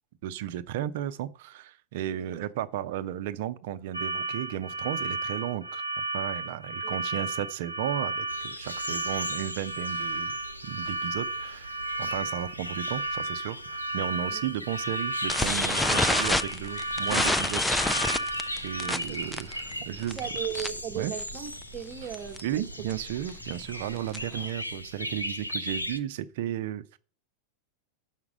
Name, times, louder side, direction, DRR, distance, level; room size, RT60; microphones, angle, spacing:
voice 1, 0.2-5.8 6.1-10.3 10.6-17.6 18.6-20.2 20.9-21.1 22.4-27.0, right 11 dB, 50° right, 0.6 m, -34 dB
sound 1, 3.9-19.0, right 2 dB, 85° right, 0.7 m, -33 dB
sound 2, 8.3-26.0, left 1 dB, 90° left, 0.7 m, -38 dB
sound 3, 15.3-20.9 21.2-21.5 21.7-21.8 22.1-22.4 22.9-24.4, left 2 dB, 5° left, 0.4 m, -28 dB
voice 2, 18.7-19.2 20.2-22.9, right 10 dB, 30° right, 0.9 m, -37 dB
7.3 x 5.9 x 6.2 m
figure-of-eight pair, 90°, 0 cm